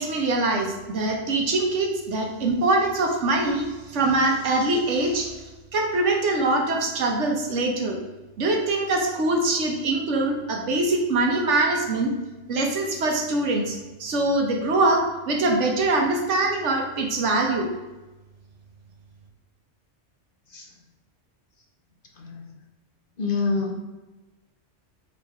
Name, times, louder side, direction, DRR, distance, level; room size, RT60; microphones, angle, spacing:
voice 1, 0.0-8.0 8.4-12.1 12.5-17.7, right 2 dB, 75° right, 2 dB, 1.3 m, -23 dB
voice 2, 22.2-22.5 23.2-23.8, left 4 dB, 50° left, 1 dB, 0.9 m, -26 dB
5.0 x 4.1 x 4.8 m, 1.1 s
omnidirectional pair, 1.3 m